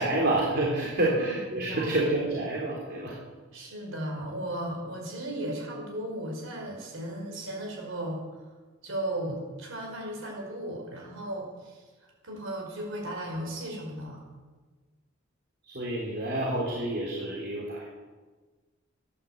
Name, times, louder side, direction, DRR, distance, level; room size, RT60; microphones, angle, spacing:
voice 1, 0.0-3.2 15.6-17.8, right 1 dB, 55° right, -4 dB, 3.6 m, -28 dB
voice 2, 1.5-2.0 3.5-8.4 8.8-14.2, right 1 dB, 70° right, 0 dB, 5.4 m, -36 dB
14.0 x 11.0 x 7.9 m, 1.3 s
head